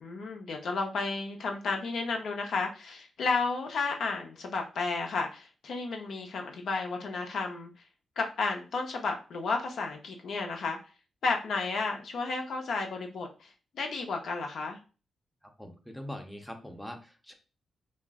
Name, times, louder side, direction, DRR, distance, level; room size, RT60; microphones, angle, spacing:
voice 1, 0.0-7.7 8.2-10.8 11.2-13.5 13.7-14.8, left 4 dB, 70° left, 2 dB, 0.6 m, -32 dB
voice 2, 15.6-17.3, left 1 dB, ahead, 3 dB, 0.5 m, -42 dB
2.4 x 2.0 x 3.5 m, 0.34 s
cardioid pair, 90°, 0 cm